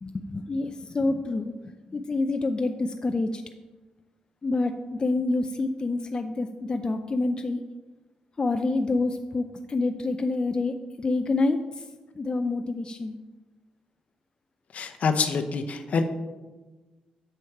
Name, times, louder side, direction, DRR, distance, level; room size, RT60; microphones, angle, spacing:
voice 1, 0.0-3.4 4.4-7.6 8.4-11.9 12.2-13.2, left 3 dB, 30° left, 6 dB, 0.5 m, -27 dB
voice 2, 14.7-16.0, left 5 dB, 60° left, 7 dB, 0.8 m, -26 dB
7.8 x 4.5 x 5.8 m, 1.2 s
cardioid pair, 75°, 3 cm